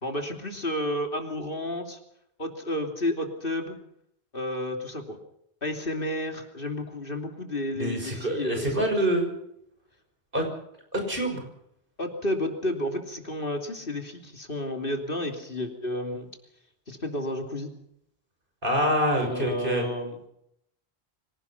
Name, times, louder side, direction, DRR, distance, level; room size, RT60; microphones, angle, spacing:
voice 1, 0.0-2.0 2.4-3.8 4.3-5.2 5.6-9.1 12.0-16.3 16.9-17.7 19.1-20.3, left 1 dB, 55° left, 4 dB, 3.2 m, -31 dB
voice 2, 7.8-9.3 10.3-10.4 10.9-11.4 18.6-19.8, equal, 55° right, 4 dB, 6.1 m, -26 dB
25.0 x 18.0 x 5.7 m, 0.75 s
omnidirectional pair, 1.1 m